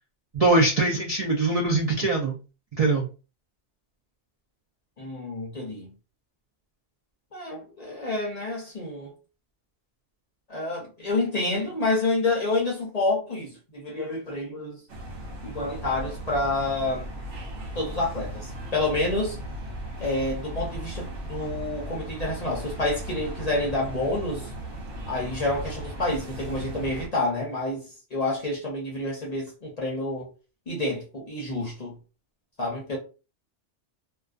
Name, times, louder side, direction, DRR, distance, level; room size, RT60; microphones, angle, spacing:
voice 1, 0.3-2.4 2.8-3.0, right 2 dB, 55° right, 0.4 m, -22 dB
voice 2, 5.0-5.9 7.3-9.1 10.5-14.8 15.4-17.1 17.7-19.4 20.0-24.5 25.1-30.3 30.7-32.0 32.6-33.0, left 2 dB, 45° left, 0.6 m, -28 dB
sound 1, 14.9-27.1, right 1 dB, 80° right, 0.9 m, -37 dB
2.3 x 2.3 x 2.4 m
omnidirectional pair, 1.2 m